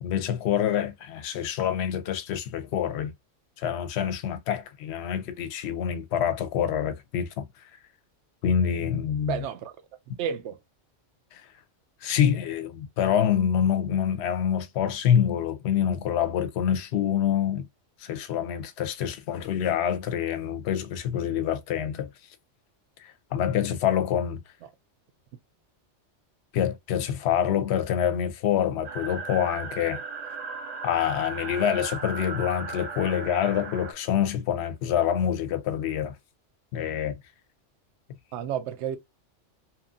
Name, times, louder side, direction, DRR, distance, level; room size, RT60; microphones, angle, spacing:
voice 1, 0.0-3.1 3.6-7.5 8.4-9.4 11.3-11.5 12.0-17.7 18.0-22.1 23.0-24.4 26.5-30.0 30.8-36.2 36.7-37.2, left 9 dB, 70° left, 0.8 m, -26 dB
voice 2, 9.3-9.7 10.2-10.6 38.3-39.0, right 8 dB, 70° right, 0.8 m, -31 dB
sound 1, 28.8-33.9, right 4 dB, 55° right, 0.4 m, -36 dB
2.9 x 2.4 x 2.4 m
omnidirectional pair, 1.2 m